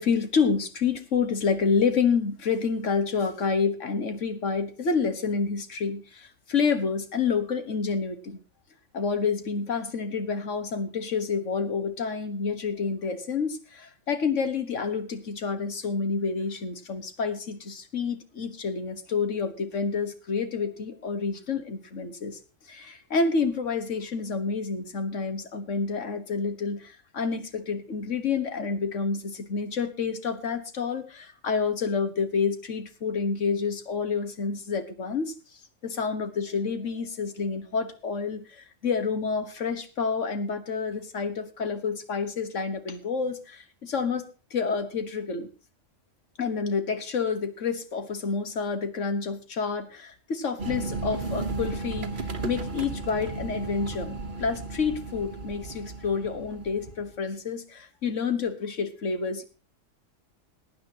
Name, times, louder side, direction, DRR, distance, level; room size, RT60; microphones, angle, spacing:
voice 1, 0.0-8.4 8.9-22.4 22.7-35.3 35.8-45.5 46.4-59.4, left 5 dB, 75° left, 9 dB, 1.8 m, -28 dB
sound 1, 50.6-57.2, right 3 dB, 45° right, 1.2 m, -34 dB
21.5 x 9.6 x 2.9 m, 0.33 s
omnidirectional pair, 1.3 m